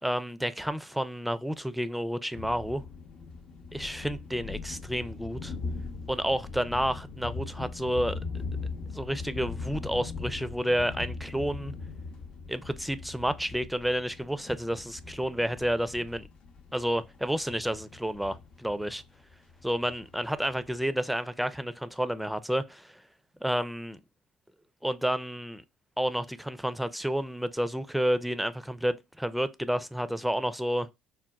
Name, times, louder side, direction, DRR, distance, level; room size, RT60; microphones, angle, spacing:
voice 1, 0.0-2.8 3.7-5.5 6.1-8.2 8.9-11.7 12.5-16.3 16.7-19.0 19.6-23.0 23.4-24.0 24.8-25.6 26.0-30.9, equal, ahead, 0.4 m, -30 dB
sound 1, 2.3-20.8, left 4 dB, 55° left, 0.6 m, -40 dB
4.0 x 2.2 x 2.3 m
supercardioid pair, 75°, 2 cm